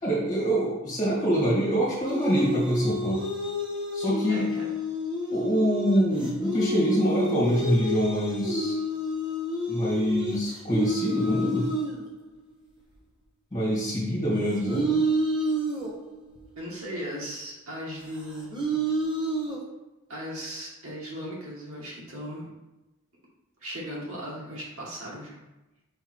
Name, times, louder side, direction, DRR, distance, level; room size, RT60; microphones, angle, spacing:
voice 1, 0.0-3.2 3.9-4.5 5.3-8.8 9.7-11.7 13.5-14.9, equal, 20° left, -6 dB, 2.2 m, -25 dB
sound 1, 2.0-12.4 12.9-13.0 14.5-16.4 18.2-19.6, equal, 25° right, 1.1 m, -29 dB
voice 2, 4.3-4.7 16.6-18.8 20.1-22.5 23.6-25.4, equal, 90° right, -5 dB, 2.0 m, -37 dB
5.6 x 3.9 x 4.5 m, 1.0 s
head